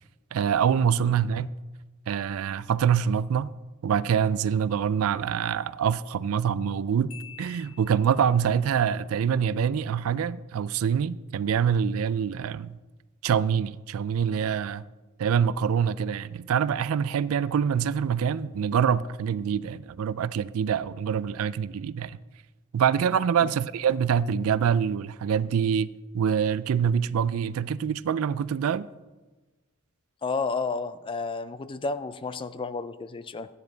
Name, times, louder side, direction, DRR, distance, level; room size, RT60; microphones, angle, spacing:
voice 1, 0.3-1.5 2.1-3.5 3.8-12.8 13.2-14.8 15.2-22.2 22.7-28.9, right 7 dB, 70° right, 0.3 m, -25 dB
Marimba xylophone, 7.1-8.5, left 9 dB, 70° left, 1.2 m, -48 dB
voice 2, 30.2-33.5, left 4 dB, 25° left, 0.3 m, -31 dB
13.5 x 9.7 x 3.9 m
head